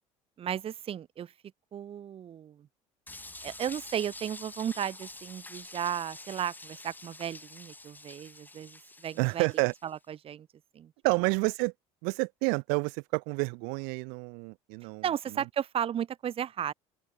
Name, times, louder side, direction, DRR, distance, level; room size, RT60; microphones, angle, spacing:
voice 1, 0.4-1.3 1.7-2.7 3.4-9.5 9.8-10.5 10.7-10.9 15.0-16.7, right 9 dB, 40° right, 0.9 m, -34 dB
sound 1, 3.1-9.9, left 2 dB, 10° left, 3.7 m, -47 dB
voice 2, 9.2-9.7 11.0-11.7 12.0-15.0, right 37 dB, 75° right, 0.5 m, -29 dB
open air
supercardioid pair, 80°, 15 cm